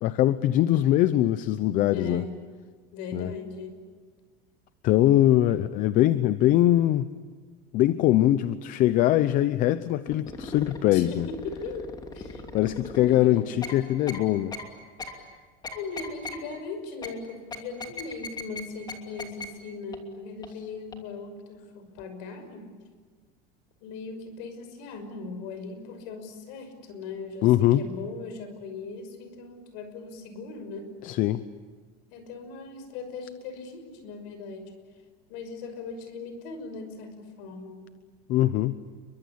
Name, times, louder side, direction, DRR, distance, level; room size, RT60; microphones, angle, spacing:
voice 1, 0.0-2.2 3.1-3.3 4.8-7.1 7.7-11.3 12.5-14.5 27.4-27.8 31.0-31.4 38.3-38.8, left 13 dB, 45° left, 13 dB, 0.8 m, -22 dB
voice 2, 1.9-2.4 2.9-3.9 10.9-11.9 12.1-12.4 12.9-13.5 15.0-15.3 15.7-22.8 23.8-30.9 32.1-34.7 35.3-37.9, left 4 dB, 60° left, 9 dB, 6.0 m, -39 dB
sound 1, 10.1-10.8 11.2-13.2 13.6-13.7 14.1-14.2 14.5-14.6 15.0-15.1 15.6-16.4 17.0-17.1 17.5-18.6 18.9-19.0 19.2-19.5 19.9-20.0 20.4-20.5 20.9-21.0, left 4 dB, 20° left, 2.9 m, -37 dB
29.5 x 23.5 x 8.6 m, 1.5 s
cardioid pair, 155°, 20 cm